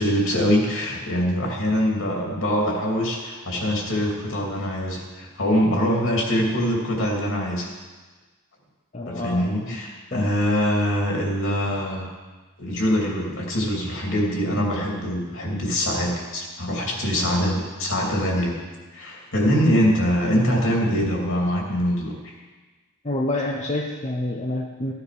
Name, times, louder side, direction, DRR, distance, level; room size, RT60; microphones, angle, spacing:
voice 1, 0.0-7.7 9.1-12.1 12.6-18.6 18.9-22.3, equal, 65° left, -1 dB, 3.0 m, -23 dB
voice 2, 8.9-9.8 10.1-10.3 23.0-24.9, left 1 dB, 30° left, -1 dB, 0.9 m, -28 dB
14.5 x 9.6 x 5.1 m, 1.3 s
head